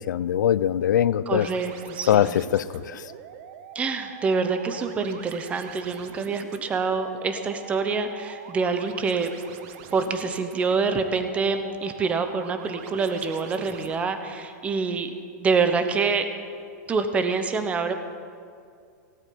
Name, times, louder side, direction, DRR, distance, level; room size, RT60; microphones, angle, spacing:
voice 1, 0.0-1.5 2.1-3.1, left 10 dB, 90° left, 18 dB, 0.5 m, -22 dB
voice 2, 1.3-2.4 3.7-9.3 9.9-15.1 15.4-16.3 16.9-17.9, right 4 dB, 15° right, 9 dB, 0.9 m, -26 dB
sound 1, 1.4-14.0, right 9 dB, 40° right, 1.0 m, -44 dB
17.0 x 8.1 x 9.4 m, 2.3 s
supercardioid pair, 165°, 10 cm